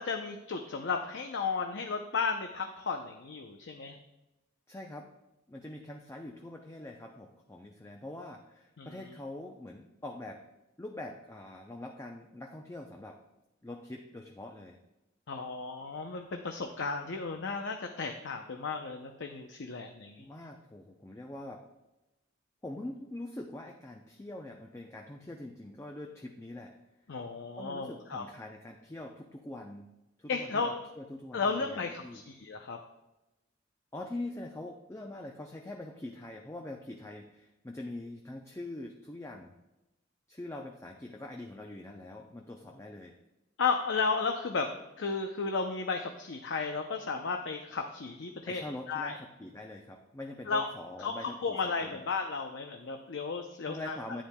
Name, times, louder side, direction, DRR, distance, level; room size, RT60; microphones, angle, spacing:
voice 1, 0.0-4.0 8.8-9.0 15.3-20.3 27.1-28.2 30.3-30.7 31.3-32.8 43.6-44.7 45.0-48.6 48.9-49.2 50.5-50.7 51.0-54.0, left 4 dB, 65° left, 4 dB, 0.6 m, -34 dB
voice 2, 4.7-5.1 5.5-10.4 10.8-13.2 13.6-14.8 20.2-21.6 22.6-26.7 27.6-29.9 30.2-32.2 33.9-39.5 40.3-43.1 48.5-52.0 53.7-54.2, left 1 dB, 15° left, 2 dB, 0.5 m, -44 dB
10.0 x 9.4 x 2.2 m, 0.98 s
head